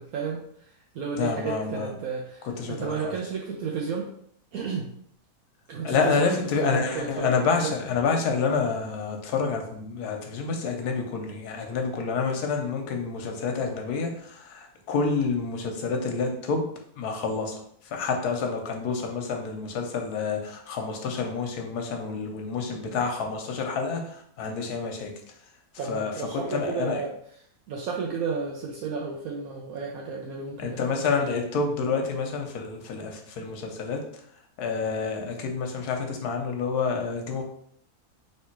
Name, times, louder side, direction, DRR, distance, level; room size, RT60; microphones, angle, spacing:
voice 1, 0.0-4.1 4.5-4.9 5.7-7.7 25.8-27.1 27.7-31.3, right 5 dB, 70° right, -1 dB, 1.1 m, -33 dB
voice 2, 1.2-1.9 2.6-3.1 5.8-16.6 17.0-17.5 17.9-25.1 25.9-27.0 30.6-34.0 34.6-37.4, left 5 dB, 85° left, 3 dB, 1.3 m, -28 dB
3.3 x 3.1 x 4.4 m, 0.66 s
omnidirectional pair, 1.6 m